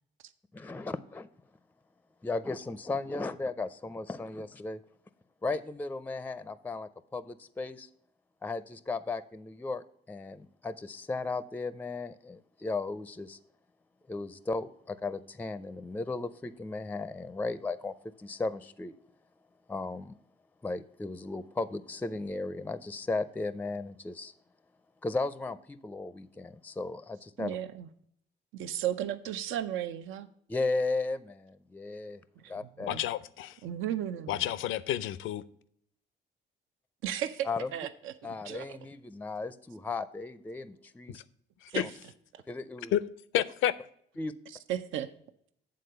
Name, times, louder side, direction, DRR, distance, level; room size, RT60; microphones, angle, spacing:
voice 1, 0.5-1.3 2.2-4.8 5.4-7.9 8.4-13.4 14.1-18.9 19.7-20.2 20.6-24.3 25.0-27.6 30.5-32.2 32.5-33.0 37.4-37.7 38.2-41.2 41.7-41.9 42.5-42.9 44.2-44.3, left 3 dB, 10° left, 0.4 m, -35 dB
voice 2, 27.4-27.9 28.5-30.3 32.4-32.5 32.9-33.0 33.6-34.4 37.0-38.8 41.7-41.8 42.3-42.4 44.7-45.1, right 11 dB, 85° right, 0.6 m, -35 dB
voice 3, 32.9-33.6 34.3-35.4 41.1-41.2 41.6-41.9 42.9-43.0 43.3-43.7, left 12 dB, 85° left, 0.5 m, -30 dB
8.5 x 3.8 x 6.6 m
cardioid pair, 90°, 20 cm